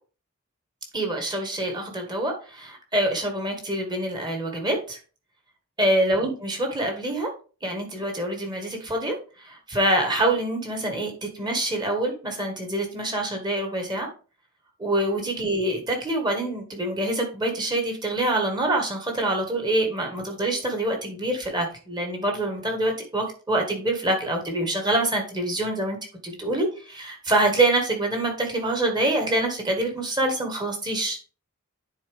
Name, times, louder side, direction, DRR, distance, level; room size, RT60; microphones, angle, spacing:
voice 1, 0.9-5.0 5.8-7.3 7.6-14.1 14.8-26.0 26.2-31.2, right 1 dB, 20° right, 2 dB, 1.6 m, -25 dB
9.7 x 4.1 x 3.4 m, 0.37 s
head